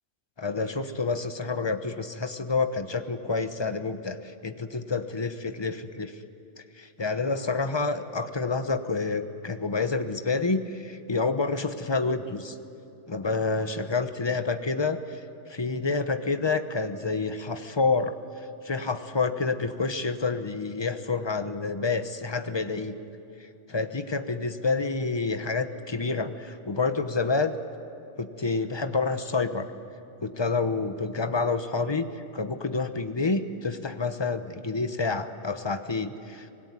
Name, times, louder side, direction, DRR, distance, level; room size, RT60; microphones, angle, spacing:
voice 1, 0.4-6.1 6.8-12.6 13.1-15.2 15.5-18.1 18.6-23.0 23.4-27.6 28.2-29.7 30.2-36.5, left 4 dB, 25° left, 9 dB, 0.9 m, -28 dB
25.0 x 19.0 x 9.6 m, 2.7 s
omnidirectional pair, 1.2 m